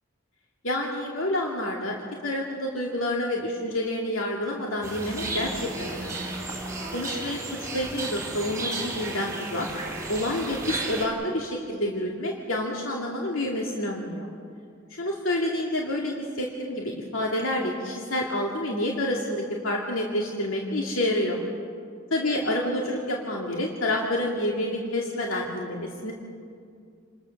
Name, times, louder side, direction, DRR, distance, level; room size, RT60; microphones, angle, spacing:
voice 1, 0.6-2.0 2.2-6.3 6.9-9.7 10.1-14.3 15.0-21.4 22.1-26.1, left 1 dB, 85° left, -1 dB, 2.4 m, -28 dB
sound 1, 4.8-11.1, right 2 dB, 15° right, 4.5 m, -33 dB
28.5 x 21.0 x 6.6 m, 2.3 s
head